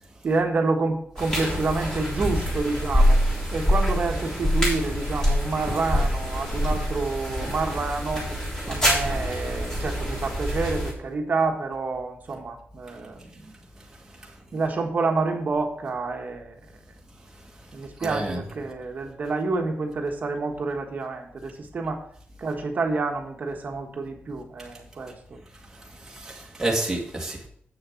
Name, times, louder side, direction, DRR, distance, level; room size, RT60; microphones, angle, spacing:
voice 1, 0.2-3.2 3.5-8.3 8.7-13.6 14.5-16.5 17.7-22.0 22.4-25.4, right 3 dB, 45° right, 3 dB, 1.4 m, -28 dB
sound 1, 1.2-10.9, equal, 15° left, 3.5 m, -25 dB
voice 2, 18.0-18.5 26.1-27.5, right 2 dB, 10° right, -2 dB, 1.8 m, -29 dB
8.1 x 6.5 x 5.8 m, 0.63 s
wide cardioid pair, 165°, 4 cm